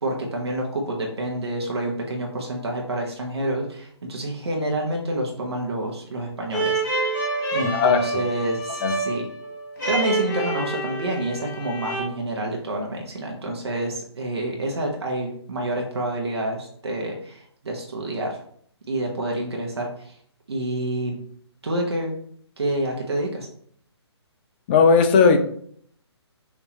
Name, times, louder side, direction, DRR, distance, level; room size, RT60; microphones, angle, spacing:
voice 1, 0.0-7.2 7.5-9.3 9.9-18.4 18.9-20.2 20.5-21.2 21.6-22.1 22.6-23.5, right 1 dB, 65° right, 0 dB, 1.1 m, -28 dB
sound 1, 6.5-12.0, right 2 dB, 40° left, 1.5 m, -27 dB
voice 2, 7.6-8.2 8.8-8.9 24.7-25.4, left 5 dB, 20° left, 7 dB, 0.4 m, -17 dB
6.0 x 2.9 x 3.0 m, 0.62 s
figure-of-eight pair, 135°, 15 cm